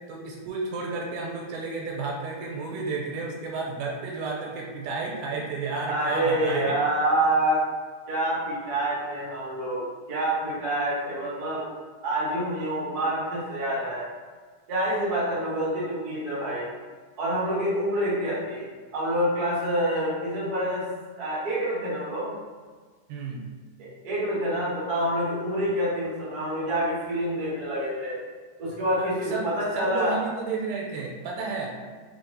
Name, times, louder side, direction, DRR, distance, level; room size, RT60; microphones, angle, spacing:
voice 1, 0.1-6.7 23.1-23.4 29.0-29.5 29.7-31.7, right 4 dB, 85° right, -2 dB, 2.1 m, -32 dB
voice 2, 5.8-7.6 8.1-11.6 12.0-14.0 14.7-16.7 17.2-18.7 18.9-20.8 21.2-22.3 23.8-28.2 28.6-30.1, right 1 dB, 60° right, -8 dB, 0.9 m, -27 dB
4.8 x 2.8 x 2.7 m, 1.5 s
omnidirectional pair, 3.6 m